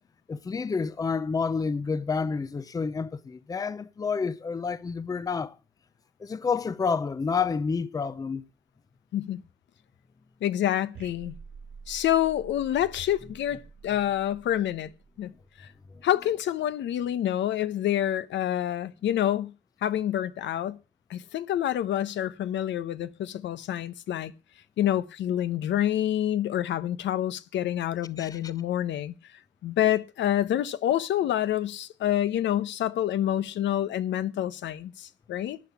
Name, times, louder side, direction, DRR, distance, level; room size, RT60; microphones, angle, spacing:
voice 1, 0.3-5.5 6.2-8.4 28.2-28.4, left 5 dB, 20° left, 0.6 m, -29 dB
voice 2, 10.4-11.4 11.9-14.9 15.2-15.3 15.6-15.7 16.0-19.5 19.8-20.8 21.1-24.3 24.8-29.1 29.6-35.6, left 11 dB, 80° left, 1.0 m, -27 dB
sound 1, 10.9-15.6, right 5 dB, 75° right, 2.7 m, -48 dB
12.5 x 9.0 x 8.4 m
cardioid pair, 165°, 19 cm